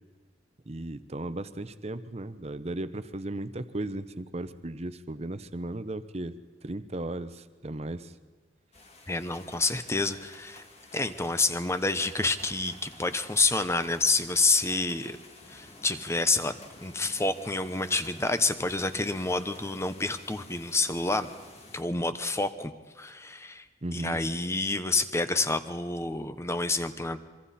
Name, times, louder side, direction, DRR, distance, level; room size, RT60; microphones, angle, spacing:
voice 1, 0.7-6.3 6.6-8.1 23.8-24.2, right 1 dB, 35° right, 12 dB, 0.9 m, -36 dB
sound 1, 8.7-21.8, left 2 dB, 35° left, 2.4 m, -51 dB
voice 2, 9.1-10.6 10.9-15.2 15.5-16.5 16.8-21.3 21.7-22.7 23.0-23.6 23.9-27.3, left 3 dB, 15° left, 11 dB, 0.9 m, -28 dB
26.5 x 23.5 x 4.3 m, 1.4 s
head